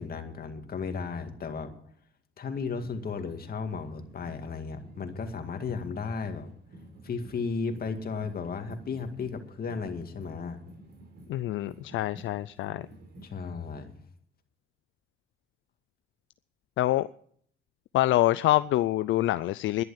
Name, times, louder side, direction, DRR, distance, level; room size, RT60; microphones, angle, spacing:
voice 1, 0.0-1.7 2.4-6.5 7.0-10.6 13.2-13.9, left 5 dB, 50° left, 2.1 m, -34 dB
sound 1, 2.8-13.3, right 1 dB, 55° right, 4.3 m, -51 dB
voice 2, 11.3-12.8 16.8-17.1 17.9-19.8, left 15 dB, 75° left, 0.4 m, -25 dB
11.5 x 11.0 x 7.2 m
cardioid pair, 90°, 20 cm